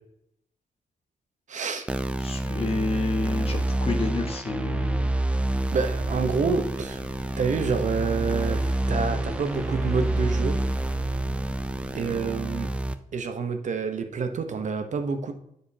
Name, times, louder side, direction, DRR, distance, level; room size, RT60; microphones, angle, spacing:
voice 1, 1.5-1.9 5.7-7.0 7.4-10.6 11.9-12.7 13.1-15.3, right 5 dB, 60° right, 8 dB, 0.9 m, -28 dB
sound 1, 1.9-12.9, right 1 dB, 10° right, 0.4 m, -28 dB
voice 2, 2.2-5.1, left 3 dB, 45° left, 5 dB, 1.2 m, -29 dB
sound 2, 5.5-12.2, right 1 dB, 25° right, 1.9 m, -42 dB
9.4 x 5.1 x 2.8 m, 0.79 s
wide cardioid pair, 110°, 14 cm